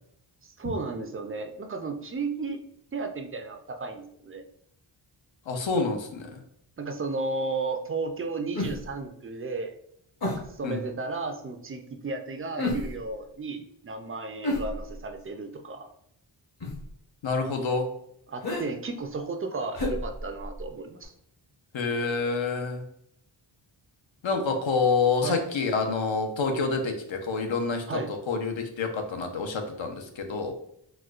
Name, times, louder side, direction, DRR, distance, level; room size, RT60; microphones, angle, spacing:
voice 1, 0.4-2.6 2.9-4.5 6.8-9.7 10.3-15.9 18.3-21.1 25.2-25.4 27.9-28.1 30.1-30.2, right 3 dB, 30° right, 6 dB, 0.4 m, -34 dB
voice 2, 5.5-6.4 10.6-10.9 17.2-17.9 21.7-22.8 24.2-30.5, left 4 dB, 65° left, 4 dB, 0.7 m, -27 dB
sound 1, 8.5-9.0 10.2-10.6 12.6-13.1 14.4-15.2 16.6-16.9 18.4-18.7 19.7-20.7 21.0-21.1, left 1 dB, 50° left, 1.1 m, -31 dB
4.2 x 2.2 x 2.4 m, 0.72 s
wide cardioid pair, 75°, 49 cm